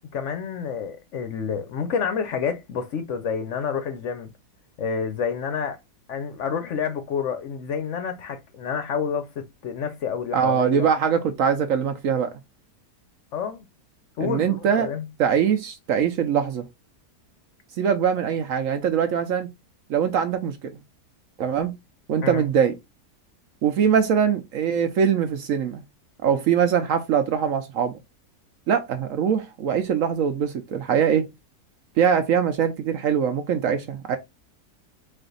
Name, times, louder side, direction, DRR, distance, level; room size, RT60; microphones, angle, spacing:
voice 1, 0.1-4.3 4.8-5.8 6.1-9.3 9.6-10.9 13.3-13.6 14.2-15.0 22.2-22.4, left 6 dB, 65° left, 0.8 m, -28 dB
voice 2, 10.3-12.3 14.2-14.9 15.2-16.6 17.8-19.5 19.9-20.8 21.4-21.7 22.1-22.7 23.6-25.8 26.2-27.9 28.7-31.3 32.0-34.2, right 7 dB, 65° right, 0.9 m, -22 dB
4.2 x 2.6 x 3.8 m
omnidirectional pair, 1.7 m